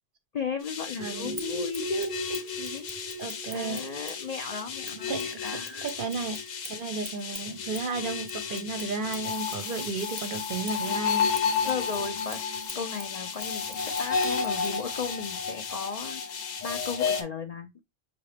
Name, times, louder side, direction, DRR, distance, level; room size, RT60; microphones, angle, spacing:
voice 1, 0.3-2.9 3.5-5.9 11.6-17.8, left 5 dB, 60° left, 0.4 m, -35 dB
sound 1, 0.6-17.2, left 6 dB, 85° left, 1.2 m, -32 dB
sound 2, 1.0-7.1, right 3 dB, 45° left, 0.8 m, -42 dB
voice 2, 1.0-1.4 3.2-3.8 5.1-5.4 5.8-11.3, right 4 dB, 55° right, 0.7 m, -33 dB
Scissors, 1.3-4.3 4.8-9.7 10.1-14.8, right 1 dB, 10° right, 0.9 m, -46 dB
5.8 x 2.6 x 3.2 m
omnidirectional pair, 1.3 m